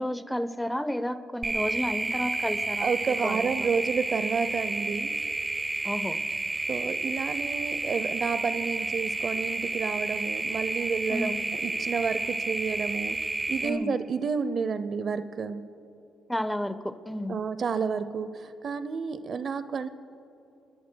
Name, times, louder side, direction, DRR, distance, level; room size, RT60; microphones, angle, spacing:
voice 1, 0.0-3.7 5.8-6.2 11.1-11.4 13.6-14.0 16.3-17.4, left 1 dB, 5° left, 11 dB, 0.8 m, -31 dB
sound 1, 1.4-13.7, right 2 dB, 25° right, 1.5 m, -31 dB
voice 2, 2.8-5.1 6.7-13.2 13.5-15.6 17.3-19.9, right 5 dB, 50° right, 13 dB, 0.6 m, -30 dB
27.5 x 20.5 x 2.3 m, 3.0 s
cardioid pair, 90°, 0 cm